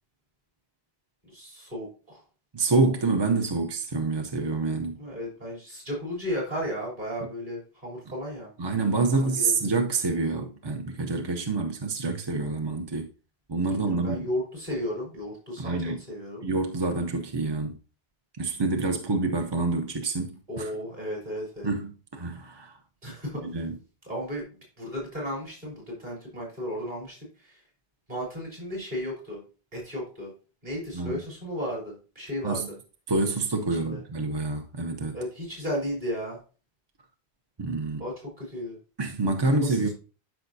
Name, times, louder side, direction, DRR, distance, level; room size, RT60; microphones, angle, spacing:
voice 1, 1.2-2.2 5.0-8.5 9.1-9.6 13.7-16.5 20.5-21.7 23.0-23.4 24.0-27.6 28.1-29.4 29.7-30.3 30.6-32.8 33.7-34.0 35.1-36.4 38.0-38.8 39.4-39.9, equal, 45° right, 3.9 m, -34 dB
voice 2, 2.5-5.0 8.6-13.1 13.5-14.2 15.6-16.0 16.4-17.8 18.4-20.7 21.6-22.7 23.4-23.8 30.9-31.2 32.4-32.7 33.1-35.2 37.6-38.0 39.0-39.9, right 3 dB, 30° right, 0.6 m, -27 dB
12.5 x 5.5 x 2.7 m
omnidirectional pair, 1.1 m